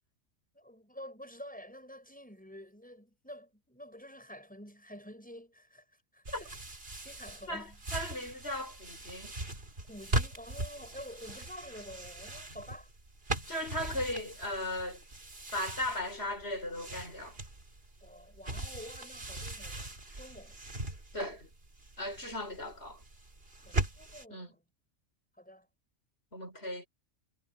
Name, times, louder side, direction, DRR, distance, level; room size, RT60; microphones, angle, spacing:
voice 1, 0.5-5.8 6.1-6.6 7.0-7.8 9.9-12.9 18.0-20.6 23.6-24.6 25.3-25.7, equal, 5° left, 5.8 m, -49 dB
sound 1, 6.3-24.3, right 2 dB, 45° right, 3.4 m, -40 dB
voice 2, 7.5-9.3 13.5-15.0 15.5-17.4 21.1-21.5 22.0-23.0 24.3-24.5 26.3-26.9, left 1 dB, 50° left, 5.3 m, -37 dB
omnidirectional pair, 1.4 m